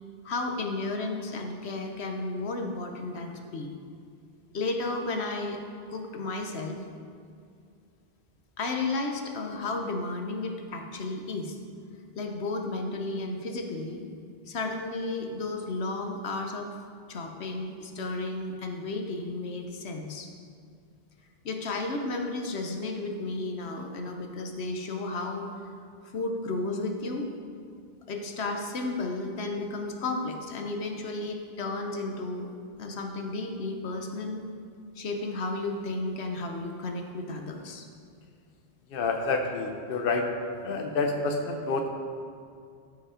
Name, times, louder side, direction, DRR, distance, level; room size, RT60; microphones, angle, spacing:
voice 1, 0.2-3.7 4.5-5.6 5.9-6.8 8.6-11.6 12.2-14.0 14.5-16.7 17.1-20.3 21.4-25.5 26.1-27.3 28.1-32.5 32.8-34.4 35.0-37.9, left 2 dB, 80° left, 3 dB, 1.2 m, -33 dB
voice 2, 38.9-40.3 40.6-41.9, left 3 dB, 60° left, 3 dB, 0.9 m, -28 dB
13.5 x 5.3 x 5.0 m, 2.3 s
omnidirectional pair, 1.1 m